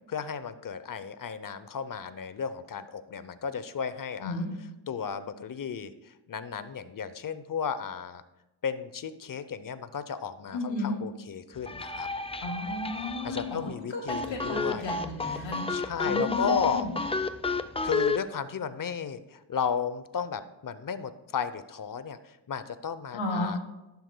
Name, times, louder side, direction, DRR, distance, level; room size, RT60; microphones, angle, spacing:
voice 1, 0.1-4.4 4.9-8.2 8.6-12.1 13.2-14.9 15.3-16.9 17.8-23.6, left 6 dB, 45° left, 13 dB, 0.7 m, -34 dB
voice 2, 10.5-10.9 12.4-15.7 16.0-16.9 23.1-23.5, left 2 dB, 70° left, 0 dB, 2.5 m, -33 dB
sound 1, 11.6-13.7 14.1-18.2, left 3 dB, 15° left, 0.4 m, -31 dB
11.5 x 11.0 x 2.2 m, 0.97 s
cardioid pair, 80°, 48 cm